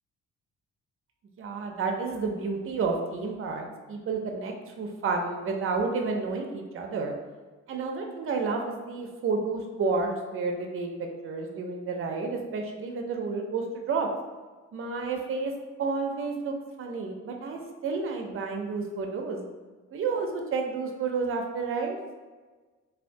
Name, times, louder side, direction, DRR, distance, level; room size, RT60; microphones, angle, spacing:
voice 1, 1.4-7.1 7.7-14.1 14.7-15.5 15.8-19.5 19.9-22.0, right 4 dB, 45° right, 3 dB, 0.5 m, -30 dB
3.4 x 2.4 x 2.5 m, 1.3 s
cardioid pair, 90°, 30 cm